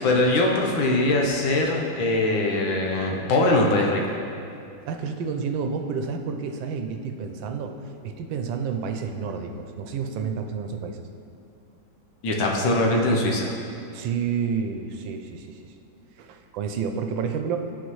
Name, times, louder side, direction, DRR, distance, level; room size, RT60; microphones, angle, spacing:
voice 1, 0.0-4.2 12.2-13.5, left 2 dB, 80° left, 0 dB, 1.7 m, -22 dB
voice 2, 4.9-7.8 8.0-11.0 13.9-15.6 16.2-17.7, right 6 dB, 80° right, 5 dB, 1.4 m, -30 dB
12.5 x 4.6 x 3.1 m, 2.5 s
omnidirectional pair, 2.1 m